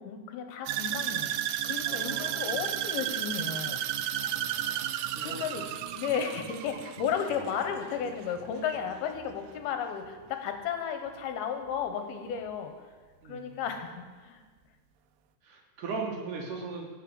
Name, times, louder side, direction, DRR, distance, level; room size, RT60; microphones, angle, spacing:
voice 1, 0.0-1.4 1.6-3.8 5.2-12.8 13.3-14.4, left 7 dB, 75° left, 7 dB, 2.8 m, -34 dB
sound 1, 0.7-8.9 9.2-9.6 10.0-10.1, right 11 dB, 85° right, 2.7 m, -33 dB
voice 2, 1.9-2.5 4.2-5.7 13.2-13.6 15.4-16.9, right 4 dB, 60° right, 0 dB, 3.0 m, -39 dB
16.5 x 6.5 x 8.9 m, 1.5 s
omnidirectional pair, 4.6 m